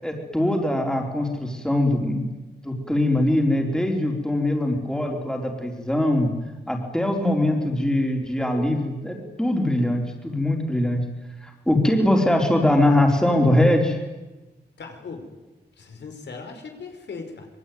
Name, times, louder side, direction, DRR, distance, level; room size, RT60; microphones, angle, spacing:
voice 1, 0.0-2.3 2.6-6.3 6.7-11.0 11.4-14.0, left 1 dB, 5° left, 2 dB, 4.4 m, -22 dB
voice 2, 14.8-15.3 15.8-17.5, left 4 dB, 85° left, 5 dB, 4.9 m, -38 dB
26.0 x 23.5 x 9.5 m, 1.1 s
wide cardioid pair, 175°, 18 cm